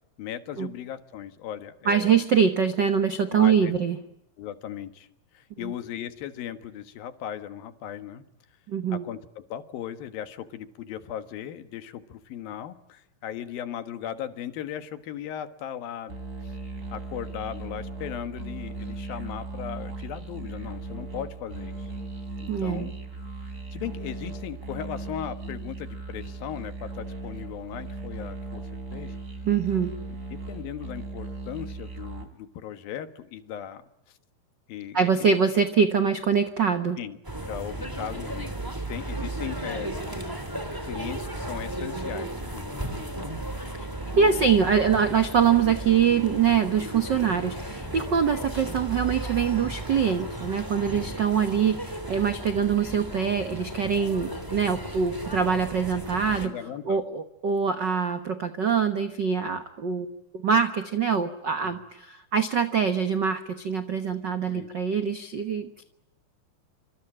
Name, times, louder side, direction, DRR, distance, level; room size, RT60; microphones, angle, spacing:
voice 1, 0.2-2.2 3.3-3.7 4.4-5.1 5.3-8.2 8.9-16.1 16.4-16.5 16.9-21.9 22.4-22.9 23.7-29.2 30.3-34.2 34.7-35.1 37.0-37.2 37.5-38.5 38.9-40.2 40.9-43.3 44.1-44.5 56.4-57.0 61.6-61.8 64.5-64.7, left 10 dB, 85° left, 11 dB, 3.4 m, -37 dB
voice 2, 1.8-4.0 5.6-5.7 8.7-9.0 22.5-22.9 29.4-29.9 34.9-37.0 43.8-43.9 44.2-56.6 56.8-60.2 60.4-65.8, right 7 dB, 75° right, 9 dB, 1.0 m, -24 dB
sound 1, 16.1-32.3, right 3 dB, 20° right, 3.5 m, -37 dB
sound 2, 37.2-56.5, right 1 dB, 5° right, 2.6 m, -35 dB
26.5 x 26.0 x 8.8 m, 0.81 s
omnidirectional pair, 4.1 m